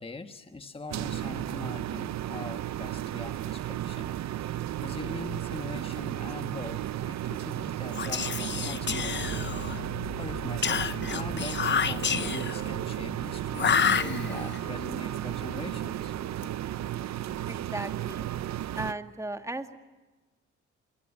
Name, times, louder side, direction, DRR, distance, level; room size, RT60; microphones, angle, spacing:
voice 1, 0.0-9.4 10.1-16.1, left 3 dB, 20° left, 7 dB, 1.5 m, -42 dB
sound 1, 0.9-18.9, right 12 dB, 65° right, 0.8 m, -34 dB
sound 2, 7.9-17.7, left 1 dB, 60° left, 4.7 m, -44 dB
Whispering, 7.9-9.9 10.6-12.7 13.5-14.6, left 7 dB, 40° left, 0.9 m, -29 dB
voice 2, 9.3-9.7 17.5-18.3 18.7-19.8, right 2 dB, 10° right, 7 dB, 2.1 m, -37 dB
27.5 x 21.5 x 9.9 m, 1.2 s
cardioid pair, 90°, 30 cm